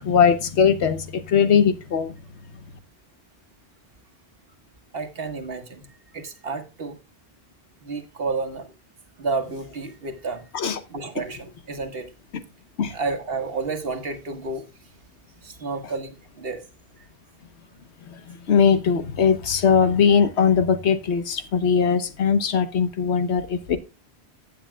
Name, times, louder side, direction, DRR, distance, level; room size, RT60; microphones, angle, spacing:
voice 1, 0.0-2.1 10.5-10.8 12.8-12.9 18.5-23.8, left 6 dB, 85° left, 1.3 m, -20 dB
voice 2, 4.9-5.9 6.1-7.0 7.8-8.7 9.2-10.4 10.9-12.1 12.9-14.6 15.4-16.6, right 4 dB, 60° right, 1.6 m, -30 dB
15.5 x 7.9 x 2.2 m
omnidirectional pair, 1.1 m